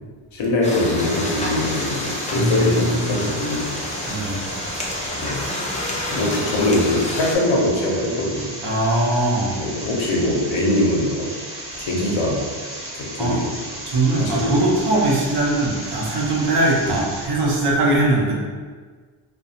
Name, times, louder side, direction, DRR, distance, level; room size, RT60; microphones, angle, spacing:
voice 1, 0.3-3.8 5.2-5.5 6.1-8.5 9.5-11.3 11.8-12.5 12.9-13.5 14.2-14.5 16.8-17.0, left 1 dB, 70° left, -2 dB, 0.8 m, -22 dB
sound 1, 0.6-7.3, left 1 dB, 15° left, 0.5 m, -29 dB
sound 2, 1.0-17.3, right 1 dB, 25° right, 0.9 m, -35 dB
voice 2, 2.3-3.3 4.1-4.4 6.0-6.3 8.6-9.6 13.2-13.4 13.9-18.3, right 2 dB, 55° right, -4 dB, 0.8 m, -21 dB
2.3 x 2.3 x 2.7 m, 1.5 s
cardioid pair, 70°, 50 cm